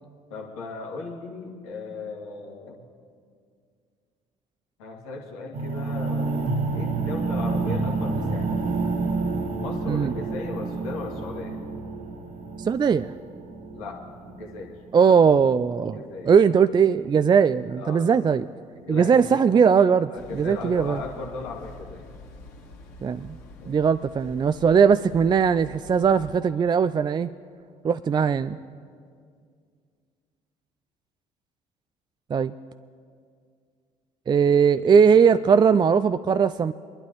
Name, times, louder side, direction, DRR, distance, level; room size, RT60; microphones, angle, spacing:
voice 1, 0.3-2.9 4.8-6.4 6.7-8.5 9.6-11.6 13.7-14.8 15.9-16.6 17.8-18.2 18.8-19.4 20.1-22.1 23.6-23.8, left 3 dB, 75° left, 0 dB, 1.9 m, -37 dB
sound 1, 5.5-15.5, right 3 dB, 50° right, 1.2 m, -29 dB
voice 2, 12.6-13.1 14.9-18.4 18.9-21.0 23.0-23.4 23.7-27.3 27.8-28.6 32.3-32.5 34.3-36.7, right 6 dB, 25° right, 11 dB, 0.4 m, -19 dB
sound 2, 20.1-26.4, left 2 dB, 60° left, 2.0 m, -46 dB
23.5 x 11.5 x 3.1 m, 2.2 s
hypercardioid pair, 55°, 17 cm